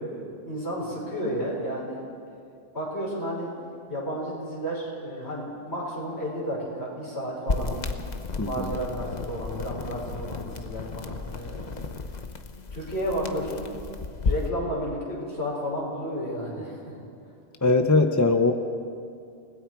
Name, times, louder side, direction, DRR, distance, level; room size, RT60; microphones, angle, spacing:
voice 1, 0.0-2.1 2.7-3.5 3.9-7.8 8.3-11.9 12.7-13.7 14.2-17.0, equal, 60° left, -4 dB, 5.8 m, -32 dB
sound 1, 7.5-14.5, left 4 dB, 40° left, 1.0 m, -33 dB
voice 2, 8.4-8.7 17.6-18.5, left 3 dB, 15° left, 6 dB, 0.8 m, -21 dB
29.0 x 20.0 x 4.7 m, 2.5 s
omnidirectional pair, 1.2 m